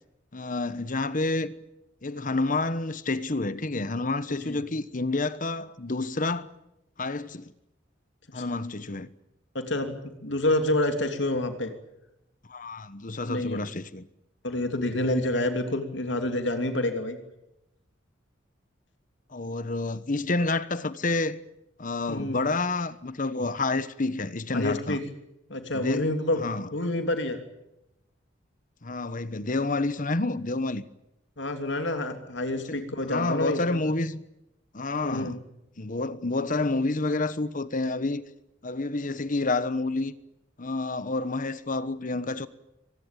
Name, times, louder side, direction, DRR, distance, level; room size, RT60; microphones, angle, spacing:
voice 1, 0.3-1.5 2.0-6.5 7.0-7.5 8.3-9.1 12.5-14.1 19.3-21.4 21.8-25.0 25.7-26.1 26.4-26.7 28.8-30.8 32.6-34.2 34.7-35.4 35.8-38.2 38.6-40.1 40.6-42.5, left 3 dB, 45° left, 1.1 m, -29 dB
voice 2, 9.5-9.9 10.2-11.7 13.2-13.6 14.4-17.2 22.1-22.4 24.5-25.0 25.5-26.4 26.7-27.4 31.4-33.8 35.0-35.4, left 1 dB, 65° left, 3.0 m, -28 dB
24.0 x 20.0 x 9.1 m
head